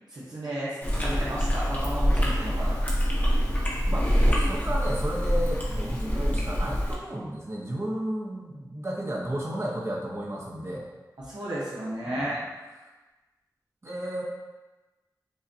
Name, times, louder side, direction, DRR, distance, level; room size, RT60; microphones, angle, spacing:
voice 1, 0.1-2.7 11.2-12.4, right 1 dB, 75° right, -8 dB, 0.7 m, -33 dB
Chewing mastication, 0.8-6.9, equal, 20° left, 0.8 m, -25 dB
voice 2, 3.9-10.9 12.1-12.3 13.8-14.2, right 1 dB, 40° right, -3 dB, 0.8 m, -33 dB
5.2 x 2.2 x 2.6 m, 1.1 s
wide cardioid pair, 70°, 7 cm